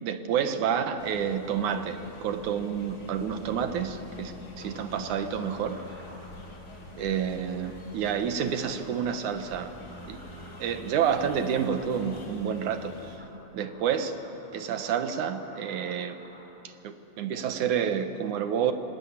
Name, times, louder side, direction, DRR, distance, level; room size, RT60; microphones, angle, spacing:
voice 1, 0.0-5.8 7.0-9.7 10.1-10.2 10.6-13.2 13.5-14.2 14.5-16.2 16.8-18.7, right 8 dB, 90° right, 8 dB, 2.8 m, -29 dB
sound 1, 1.0-13.2, left 2 dB, 45° left, 3.4 m, -45 dB
sound 2, 4.6-16.4, equal, 5° right, 5.4 m, -52 dB
26.5 x 19.5 x 9.7 m, 2.9 s
omnidirectional pair, 3.3 m